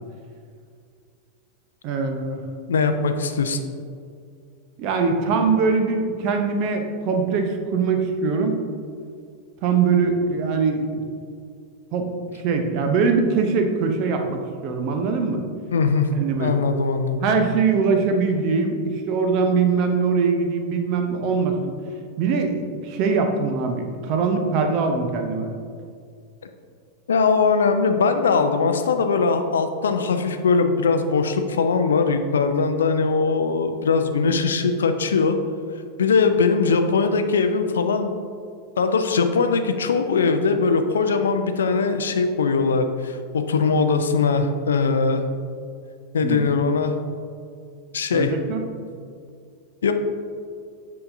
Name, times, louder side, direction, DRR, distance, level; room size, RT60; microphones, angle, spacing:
voice 1, 1.8-2.4 4.8-8.5 9.6-10.9 11.9-12.1 12.3-15.4 16.1-16.5 17.2-21.8 22.2-25.5 46.2-46.4 48.1-48.6, right 5 dB, 40° right, 5 dB, 0.7 m, -22 dB
voice 2, 2.7-3.6 15.7-16.1 16.4-17.3 27.1-35.4 36.0-38.1 38.8-45.2 46.1-46.9 47.9-48.3 49.8-49.9, left 4 dB, 65° left, 8 dB, 0.4 m, -21 dB
7.7 x 5.7 x 2.6 m, 2.3 s
figure-of-eight pair, 90°, 0 cm